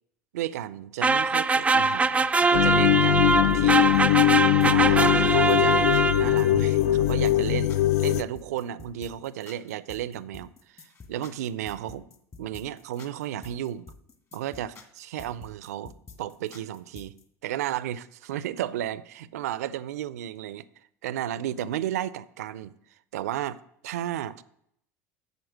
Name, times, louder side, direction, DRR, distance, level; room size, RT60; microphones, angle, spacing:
voice 1, 0.3-3.9 4.6-12.1 12.4-13.9 14.3-15.9 16.2-17.1 17.4-20.6 21.0-22.7 23.1-24.4, right 11 dB, 75° right, 0.5 m, -33 dB
sound 1, 1.0-6.5, right 3 dB, 15° right, 0.4 m, -22 dB
sound 2, 2.5-8.2, left 13 dB, 70° left, 0.4 m, -21 dB
sound 3, 3.3-17.2, left 4 dB, 35° left, 1.7 m, -48 dB
8.0 x 6.9 x 6.5 m
hypercardioid pair, 75°, 8 cm